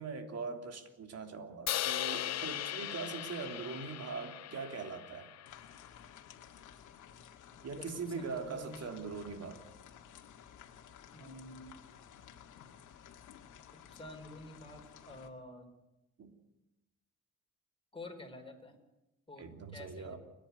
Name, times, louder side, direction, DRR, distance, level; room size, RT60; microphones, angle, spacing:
voice 1, 0.0-5.3 7.6-9.6 16.2-16.4 19.4-20.2, right 4 dB, 55° right, 5 dB, 3.2 m, -41 dB
Crash cymbal, 1.7-5.9, left 12 dB, 60° left, 0.7 m, -38 dB
sound 1, 5.5-15.3, left 9 dB, 80° left, 2.1 m, -55 dB
voice 2, 7.7-9.0 11.1-11.7 13.9-15.7 17.9-18.8 19.3-20.2, left 2 dB, 15° left, 4 dB, 4.6 m, -50 dB
30.0 x 10.5 x 9.7 m, 0.96 s
cardioid pair, 90°, 30 cm